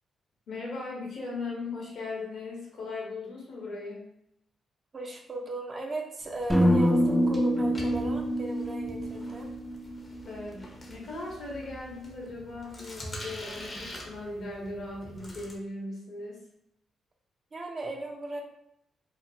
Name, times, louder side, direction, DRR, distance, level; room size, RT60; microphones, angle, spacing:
voice 1, 0.5-4.0 10.2-16.4, left 3 dB, 70° left, -3 dB, 1.0 m, -38 dB
voice 2, 4.9-9.5 17.5-18.4, right 1 dB, 45° right, 0 dB, 0.6 m, -37 dB
sound 1, 6.2-15.6, equal, 35° left, 0.7 m, -45 dB
sound 2, 6.5-10.6, equal, ahead, 0.4 m, -26 dB
2.9 x 2.1 x 2.6 m, 0.75 s
supercardioid pair, 60°, 0 cm